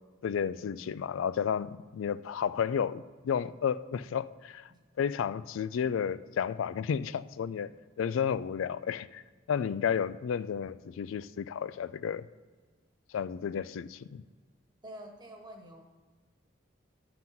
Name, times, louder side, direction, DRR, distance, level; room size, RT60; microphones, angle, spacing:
voice 1, 0.2-4.7 5.0-9.2 9.5-12.3 13.1-14.2, left 7 dB, 80° left, 16 dB, 0.3 m, -32 dB
voice 2, 14.8-15.8, right 1 dB, 20° right, 2 dB, 1.2 m, -47 dB
10.5 x 4.0 x 5.8 m, 1.4 s
head